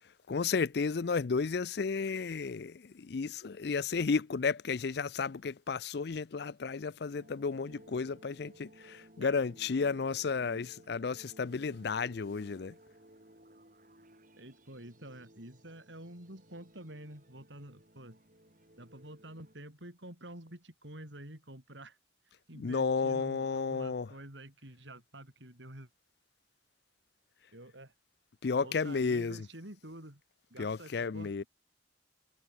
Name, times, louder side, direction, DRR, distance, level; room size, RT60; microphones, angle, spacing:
voice 1, 0.3-12.7 22.5-24.1 28.4-29.5 30.6-31.4, left 5 dB, 55° left, 0.5 m, -33 dB
sound 1, 7.1-19.6, right 1 dB, 45° right, 6.6 m, -58 dB
voice 2, 14.4-18.2 18.8-22.0 22.5-25.9 27.5-27.9 28.6-30.2 30.5-31.5, right 1 dB, 70° right, 6.5 m, -49 dB
head